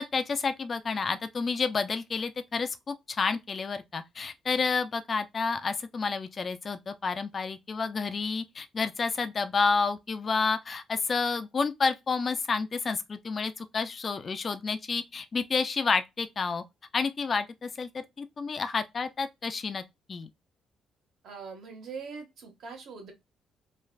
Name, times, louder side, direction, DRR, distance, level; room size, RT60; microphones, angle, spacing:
voice 1, 0.0-16.6 16.9-19.8 20.1-20.3, left 4 dB, 30° left, 0.4 m, -30 dB
voice 2, 21.2-23.1, right 5 dB, 65° right, 1.3 m, -42 dB
3.2 x 2.4 x 2.2 m
cardioid pair, 150°, 0 cm